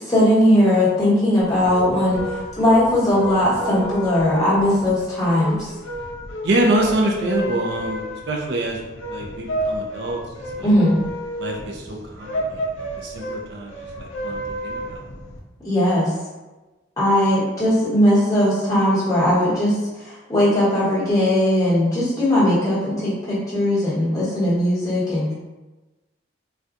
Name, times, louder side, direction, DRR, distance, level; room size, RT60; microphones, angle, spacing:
voice 1, 0.0-5.7 10.6-11.0 15.6-16.1 17.0-25.3, left 1 dB, 15° left, -10 dB, 1.2 m, -19 dB
sound 1, 1.5-15.4, equal, 90° left, 0.6 m, -31 dB
voice 2, 6.4-10.2 10.6-10.8 11.4-15.0, right 1 dB, 60° right, 0 dB, 0.5 m, -25 dB
4.1 x 2.3 x 2.5 m, 1.1 s
head